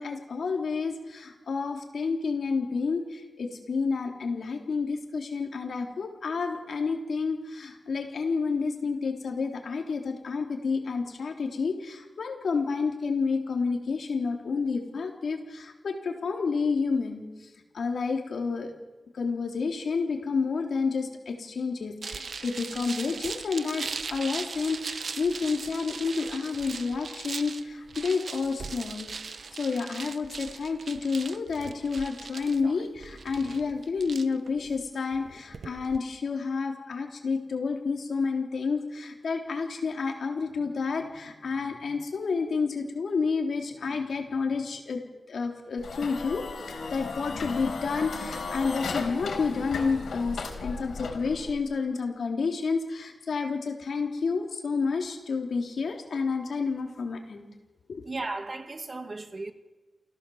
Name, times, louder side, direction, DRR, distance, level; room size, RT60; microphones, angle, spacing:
voice 1, 0.0-17.5 17.7-18.7 19.1-45.0 45.3-57.5 57.9-58.0, left 4 dB, 65° left, 3.5 m, -30 dB
sound 1, 22.0-36.0, right 5 dB, 55° right, 0.9 m, -39 dB
sound 2, 45.8-51.6, left 4 dB, 85° left, 4.3 m, -35 dB
voice 2, 58.0-59.5, right 2 dB, 30° right, 1.4 m, -35 dB
28.5 x 15.5 x 7.2 m
wide cardioid pair, 155°, 0 cm